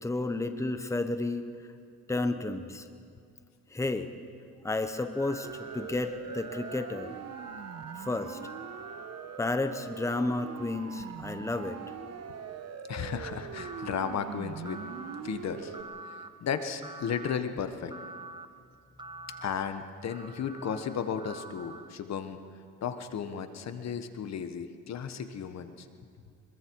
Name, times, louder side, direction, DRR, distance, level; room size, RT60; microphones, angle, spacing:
voice 1, 0.0-1.4 2.1-2.9 3.7-4.1 4.6-5.5 5.7-7.1 8.0-8.4 9.4-11.8, left 2 dB, 10° left, 8 dB, 1.1 m, -31 dB
sound 1, 5.0-10.3 13.6-14.1 14.6-15.2 15.7-16.3 16.8-17.4 17.9-18.5 19.0-19.5 20.1-21.9, right 2 dB, 15° right, 1.0 m, -47 dB
Siren, 5.4-15.8, right 7 dB, 55° right, 1.3 m, -42 dB
voice 2, 12.9-14.8 15.2-15.7 16.0-17.9 19.4-22.4 22.8-25.9, left 7 dB, 60° left, 9 dB, 1.4 m, -34 dB
25.0 x 22.5 x 4.8 m, 2.2 s
cardioid pair, 90°, 30 cm